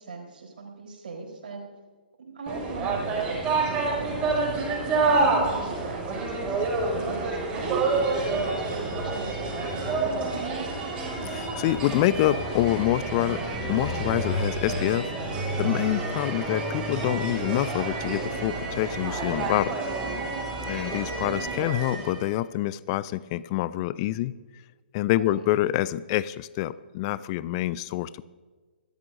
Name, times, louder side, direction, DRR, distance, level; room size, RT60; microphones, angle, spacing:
voice 1, 0.0-1.7 2.2-7.8 8.2-10.8 20.4-20.8 25.1-25.4, right 4 dB, 60° right, 1 dB, 3.9 m, -40 dB
sound 1, 2.5-22.3, right 3 dB, 20° right, 5.8 m, -28 dB
voice 2, 11.2-13.4 13.7-15.3 15.6-19.8 20.6-24.3 24.9-28.2, left 15 dB, 35° left, 18 dB, 0.4 m, -26 dB
26.5 x 13.0 x 2.6 m, 1.4 s
figure-of-eight pair, 120°, 5 cm